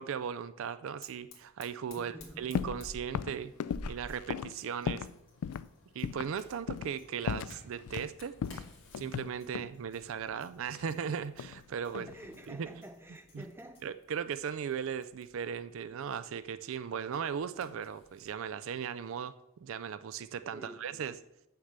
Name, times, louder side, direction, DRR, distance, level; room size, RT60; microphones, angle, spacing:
voice 1, 0.0-3.5 3.9-5.1 5.9-8.6 8.9-12.1 12.5-12.7 13.3-13.4 13.8-19.3 19.6-21.2, right 7 dB, 60° right, 13 dB, 0.3 m, -37 dB
Fire, 1.0-18.4, left 1 dB, 55° left, 2.3 m, -53 dB
voice 2, 2.0-2.5 11.9-13.8 20.5-21.1, right 1 dB, 10° right, 6 dB, 0.7 m, -49 dB
sound 1, 2.5-2.8 3.1-5.2 5.4-5.7 6.0-6.4 6.7-7.0 7.3-8.1 8.4-9.8 10.7-11.6 11.9-12.4, left 7 dB, 85° left, 0.3 m, -36 dB
sound 2, 3.7-13.8, left 3 dB, 25° left, 3.2 m, -68 dB
8.0 x 6.6 x 6.5 m, 0.88 s
head